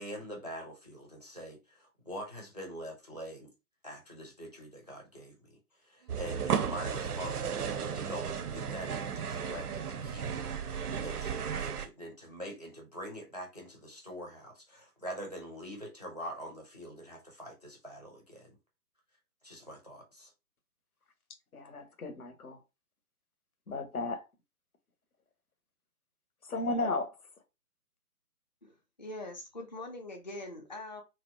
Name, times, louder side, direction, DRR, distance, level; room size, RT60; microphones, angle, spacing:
voice 1, 0.0-3.5 3.8-5.5 5.8-18.6 19.4-20.3, equal, 30° right, 0.4 m, -44 dB
sound 1, 6.1-11.9, right 7 dB, 80° right, 0.5 m, -34 dB
voice 2, 21.5-22.6 23.7-24.2 26.4-27.2, left 2 dB, 75° left, 0.8 m, -34 dB
voice 3, 29.0-31.0, left 2 dB, 30° left, 0.4 m, -42 dB
2.7 x 2.1 x 2.5 m
figure-of-eight pair, 135°, 45 cm